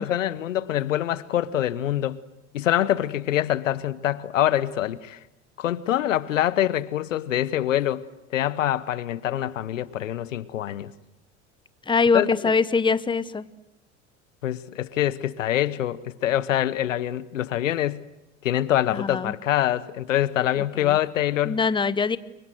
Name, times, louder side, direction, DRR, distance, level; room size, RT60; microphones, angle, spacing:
voice 1, 0.0-2.2 2.5-5.2 5.6-8.0 8.3-10.9 12.1-12.5 14.4-18.0 18.4-21.6, left 12 dB, 80° left, 1.0 m, -25 dB
voice 2, 11.9-13.5 18.9-19.3 20.8-21.0 21.4-22.2, left 5 dB, 15° left, 1.0 m, -23 dB
29.0 x 23.5 x 7.8 m
hypercardioid pair, 75°, 37 cm